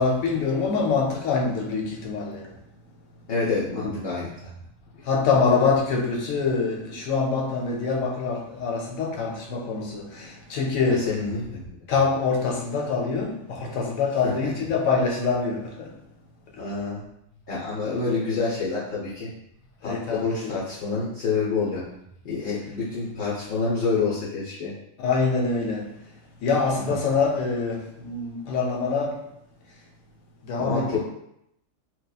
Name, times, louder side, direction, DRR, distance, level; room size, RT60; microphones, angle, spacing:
voice 1, 0.0-2.4 3.8-4.0 5.1-10.1 10.5-11.1 11.9-15.9 19.8-20.6 25.0-25.9 26.4-27.8 28.0-29.1 30.5-31.0, left 4 dB, 85° left, -1 dB, 1.0 m, -24 dB
voice 2, 3.3-4.3 11.0-11.8 14.2-14.3 16.6-17.0 17.5-19.3 19.8-21.8 22.2-24.7 26.8-27.0 30.6-31.0, left 4 dB, 60° left, -6 dB, 0.7 m, -27 dB
2.8 x 2.2 x 2.3 m, 0.79 s
omnidirectional pair, 1.4 m